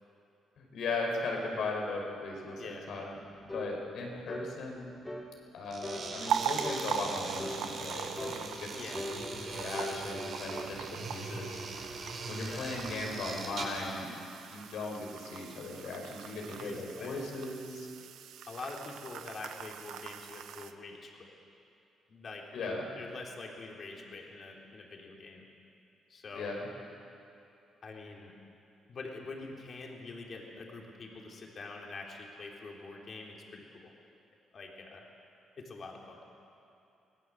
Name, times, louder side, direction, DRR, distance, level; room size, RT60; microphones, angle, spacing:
voice 1, 0.6-3.2 3.4-5.0 5.5-11.6 12.3-14.1 14.5-17.9 22.5-22.9 26.4-26.7, left 3 dB, 75° left, 0 dB, 5.2 m, -38 dB
sound 1, 3.5-3.7 4.3-4.5 5.0-5.3 5.8-6.1 6.6-6.8 7.4-7.6 8.2-8.4 8.9-10.7, left 1 dB, 15° left, 3.2 m, -40 dB
sound 2, 5.7-13.9, right 3 dB, 60° right, 4.8 m, -41 dB
sound 3, 6.3-20.7, right 9 dB, 80° right, 0.9 m, -41 dB
voice 2, 8.7-9.1 12.4-12.7 16.5-17.2 18.5-21.3 22.1-25.4 26.1-26.6 27.8-28.3 28.9-33.9 34.5-35.1 35.6-36.2, left 3 dB, 45° left, 0 dB, 3.9 m, -45 dB
24.5 x 18.0 x 7.8 m, 2.7 s
cardioid pair, 90°, 0 cm